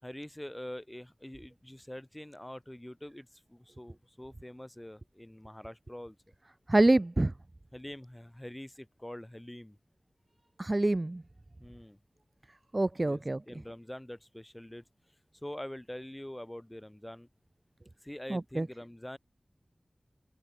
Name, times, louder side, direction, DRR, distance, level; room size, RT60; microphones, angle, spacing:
voice 1, 0.0-6.2 7.7-9.8 11.6-12.0 13.0-13.2 13.5-14.8 15.4-17.3 18.0-19.2, left 1 dB, 15° left, 5.2 m, -45 dB
voice 2, 6.7-7.3 10.6-11.2 12.7-13.4 18.3-18.7, right 2 dB, 35° right, 0.3 m, -26 dB
open air
wide cardioid pair, 70°, 0 cm